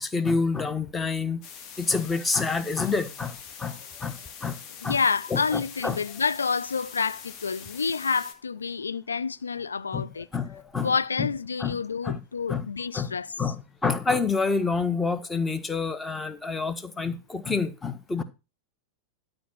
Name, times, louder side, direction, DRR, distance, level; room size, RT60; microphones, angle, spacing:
voice 1, 0.0-1.4 1.8-4.6 4.8-5.0 5.3-6.0 9.9-10.1 10.3-10.9 11.2-11.3 11.6-11.8 12.0-12.2 12.5-12.7 12.9-18.2, left 4 dB, 15° left, 1.4 m, -28 dB
sound 1, 1.4-8.3, left 7 dB, 40° left, 1.8 m, -44 dB
voice 2, 4.8-10.3 10.8-13.3, left 5 dB, 75° left, 0.5 m, -28 dB
12.0 x 5.1 x 5.8 m
figure-of-eight pair, 90°, 0 cm